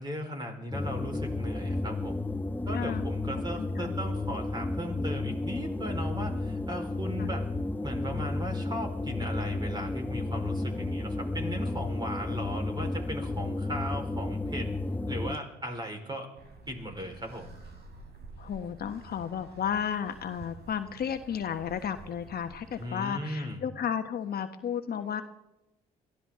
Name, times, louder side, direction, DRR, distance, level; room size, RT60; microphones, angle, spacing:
voice 1, 0.0-2.2 2.7-7.4 7.8-14.7 15.1-16.3 16.7-17.5 22.8-23.6, equal, 20° right, 3 dB, 4.6 m, -37 dB
sound 1, 0.7-15.4, left 2 dB, 10° left, 0.9 m, -32 dB
voice 2, 2.7-3.0 3.6-3.9 7.2-7.3 18.4-25.2, left 8 dB, 50° left, 7 dB, 1.3 m, -33 dB
sound 2, 16.3-22.8, right 3 dB, 55° right, 4.5 m, -49 dB
22.5 x 15.0 x 3.8 m, 0.94 s
hypercardioid pair, 65°, 20 cm